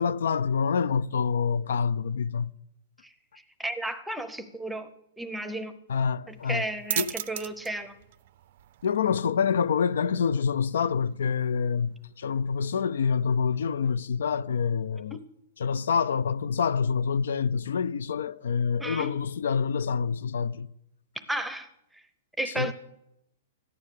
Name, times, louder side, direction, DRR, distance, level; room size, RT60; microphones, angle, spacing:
voice 1, 0.0-2.5 5.9-6.7 7.0-7.1 8.8-15.2 15.6-20.7 22.6-22.7, left 6 dB, 90° left, 0.5 m, -26 dB
voice 2, 3.6-4.9 5.2-5.7 6.3-7.9 18.8-19.1 21.3-21.7 21.9-22.0 22.4-22.7, right 1 dB, 5° right, 0.6 m, -33 dB
sound 1, 6.3-13.6, right 13 dB, 45° right, 0.4 m, -40 dB
14.0 x 9.6 x 6.6 m
hypercardioid pair, 170°, 0 cm